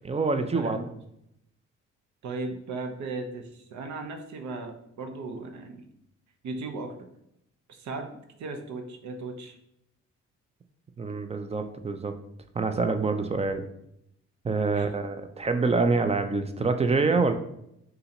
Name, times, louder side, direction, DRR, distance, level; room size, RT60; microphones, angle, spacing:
voice 1, 0.0-0.8 11.0-12.1 12.5-13.7 14.4-17.3, right 4 dB, 20° right, 7 dB, 0.4 m, -26 dB
voice 2, 0.5-0.8 2.2-5.8 6.4-6.9 7.7-9.6 14.7-14.8, right 3 dB, 70° right, 5 dB, 0.8 m, -37 dB
3.8 x 2.8 x 4.2 m, 0.79 s
cardioid pair, 90°, 30 cm